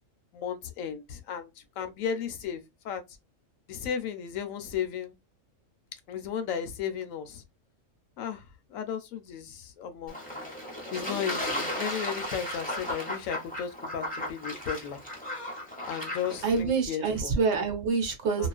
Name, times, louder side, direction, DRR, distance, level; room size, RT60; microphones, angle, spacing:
voice 1, 0.3-1.5 1.8-3.0 3.7-5.1 6.1-7.4 8.2-8.4 8.7-10.2 10.9-15.0 15.9-17.3 18.4-18.5, left 8 dB, 85° left, 1.0 m, -34 dB
Fowl / Bird / Water, 10.1-16.6, left 1 dB, 10° left, 0.5 m, -35 dB
voice 2, 16.4-18.5, right 4 dB, 60° right, 1.0 m, -26 dB
2.4 x 2.3 x 2.3 m
omnidirectional pair, 1.4 m